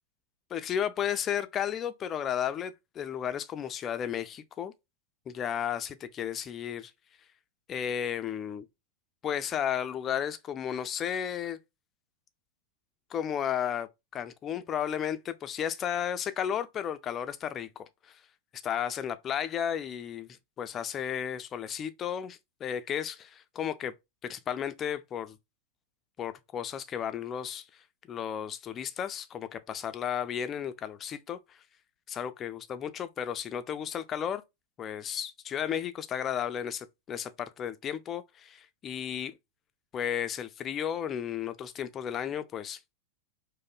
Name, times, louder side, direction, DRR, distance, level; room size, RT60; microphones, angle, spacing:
voice 1, 0.5-4.7 5.3-6.9 7.7-8.6 9.2-11.6 13.1-17.7 18.1-18.2 18.5-23.9 24.2-25.4 26.2-27.7 28.1-31.6 32.1-34.4 34.8-39.4 39.9-42.8, left 9 dB, 25° left, 0.4 m, -33 dB
5.0 x 2.1 x 2.3 m
figure-of-eight pair, 90°, 0 cm